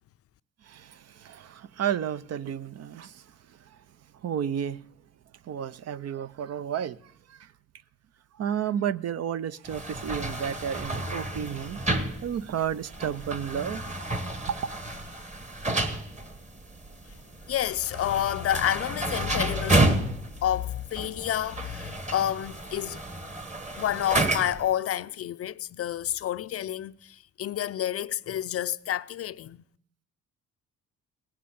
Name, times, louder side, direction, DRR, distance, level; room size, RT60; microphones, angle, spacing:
voice 1, 0.6-3.8 4.1-4.9 5.4-7.5 8.3-11.8 12.2-13.8 14.5-14.7, right 8 dB, 55° right, 0.6 m, -32 dB
sound 1, 9.7-24.7, right 2 dB, 25° right, 1.4 m, -31 dB
voice 2, 17.5-23.0 23.8-29.6, left 11 dB, 50° left, 0.5 m, -29 dB
17.5 x 7.5 x 8.5 m
cardioid pair, 90°, 30 cm